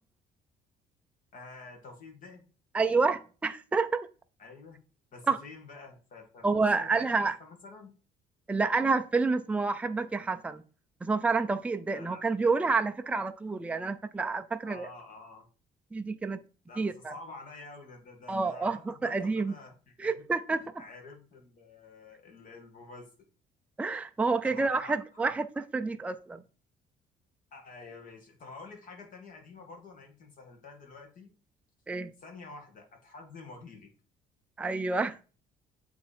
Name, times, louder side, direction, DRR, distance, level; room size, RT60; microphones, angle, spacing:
voice 1, 1.3-2.4 4.4-4.8 5.1-6.5 6.7-7.9 11.9-12.2 13.1-13.2 14.6-15.5 16.7-20.2 20.8-23.1 24.4-24.9 25.2-25.3 27.5-31.3 32.2-33.9, left 3 dB, 50° left, 2.2 m, -48 dB
voice 2, 2.7-4.1 5.3-5.4 6.4-7.3 8.5-10.6 11.0-14.9 15.9-16.4 16.8-17.1 18.3-19.5 20.0-20.6 23.8-25.5 25.7-26.4 31.9-32.1 34.6-35.3, right 4 dB, 10° right, 0.4 m, -28 dB
8.2 x 3.5 x 4.3 m
cardioid pair, 110°, 17 cm